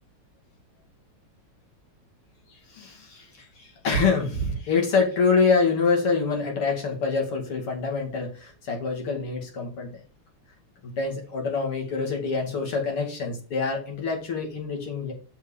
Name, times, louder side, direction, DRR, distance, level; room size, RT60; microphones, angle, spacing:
voice 1, 2.5-10.0 10.8-15.1, left 4 dB, 80° left, 0 dB, 3.3 m, -26 dB
6.8 x 5.5 x 5.0 m, 0.38 s
omnidirectional pair, 2.4 m